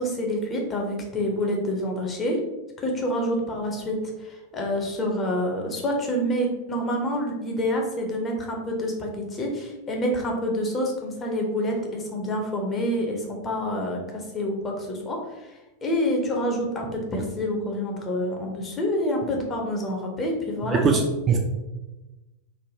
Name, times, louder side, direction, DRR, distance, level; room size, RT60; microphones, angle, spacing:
voice 1, 0.0-2.4 2.8-15.5 15.8-20.8, equal, 20° left, 1 dB, 0.6 m, -27 dB
voice 2, 20.7-21.4, right 5 dB, 25° right, 1 dB, 0.3 m, -21 dB
3.2 x 2.2 x 2.6 m, 1.1 s
figure-of-eight pair, 90°, 0 cm